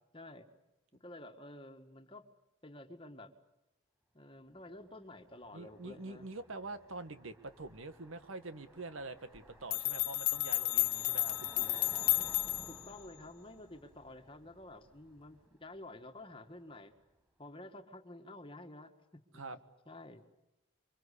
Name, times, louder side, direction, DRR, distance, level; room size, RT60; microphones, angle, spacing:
voice 1, 0.1-0.5 0.9-2.3 2.6-3.3 4.1-6.3 11.2-11.4 11.7-12.1 12.7-16.9 17.4-19.5 19.9-20.2, left 1 dB, 25° left, 6 dB, 1.8 m, -51 dB
Car passing by, 4.6-16.6, right 1 dB, 10° right, 7.4 m, -57 dB
voice 2, 5.5-11.7 19.3-19.6, right 2 dB, 70° right, 10 dB, 1.6 m, -45 dB
sound 1, 9.3-9.4 9.7-12.9, left 17 dB, 90° left, 1.0 m, -32 dB
27.5 x 24.0 x 8.4 m, 0.97 s
head